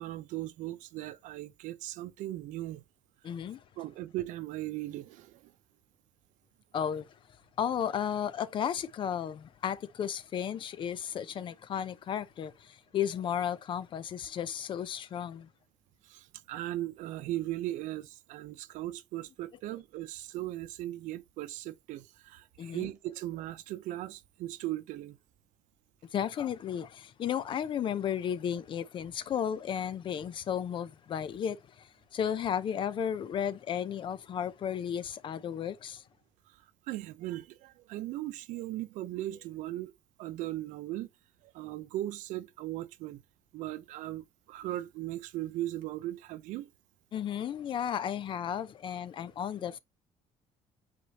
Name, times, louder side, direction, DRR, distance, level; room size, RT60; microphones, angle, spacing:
voice 1, 0.0-2.8 3.8-5.5 16.0-25.2 36.5-39.9 40.2-41.1 41.4-43.2 43.5-46.7, right 15 dB, 90° right, 0.7 m, -38 dB
voice 2, 3.2-3.6 6.7-7.1 7.6-15.5 22.6-22.9 26.1-36.0 47.1-49.8, left 9 dB, 40° left, 0.6 m, -34 dB
8.6 x 4.3 x 2.9 m
cardioid pair, 155°, 13 cm